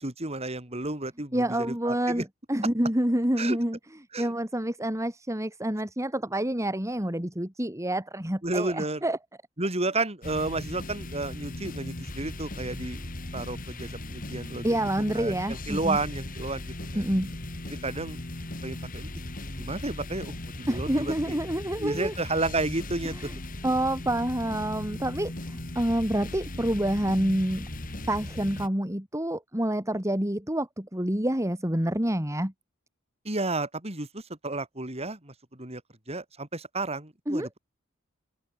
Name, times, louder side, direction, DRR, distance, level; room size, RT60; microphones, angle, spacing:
voice 1, 0.0-2.2 3.4-3.6 4.1-4.3 8.4-9.0 9.6-13.0 13.3-14.7 15.1-17.0 17.7-18.2 18.6-19.1 19.5-21.4 21.8-23.2 33.2-35.8 36.1-37.6, right 2 dB, 30° right, 4.5 m, -32 dB
voice 2, 1.3-3.8 4.2-9.2 14.6-16.0 16.9-17.3 20.7-22.1 23.1-23.3 23.6-27.7 28.1-32.5 37.3-37.5, right 1 dB, 15° right, 3.1 m, -28 dB
sound 1, 10.2-28.7, left 1 dB, 45° left, 2.7 m, -38 dB
head